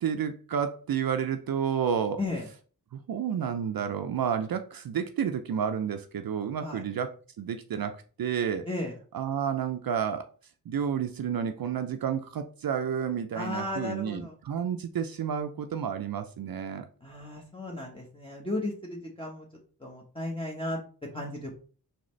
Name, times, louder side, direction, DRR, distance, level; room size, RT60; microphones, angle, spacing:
voice 1, 0.0-2.2 2.9-8.7 9.1-10.3 10.7-16.9, right 8 dB, 60° right, 0.5 m, -30 dB
voice 2, 13.3-14.4 17.0-19.5 19.8-20.8 21.1-21.5, left 2 dB, 15° left, 1.1 m, -35 dB
4.3 x 3.8 x 3.2 m
cardioid pair, 50°, 41 cm